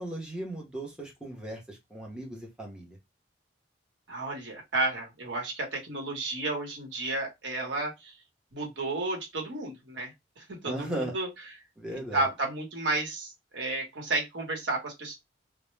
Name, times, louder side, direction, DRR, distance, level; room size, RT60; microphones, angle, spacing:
voice 1, 0.0-3.0 10.6-11.1 11.8-12.2, right 1 dB, 5° right, 0.6 m, -37 dB
voice 2, 4.1-8.1 8.5-11.6 11.9-15.1, right 2 dB, 75° right, 0.9 m, -32 dB
2.1 x 2.0 x 3.0 m
head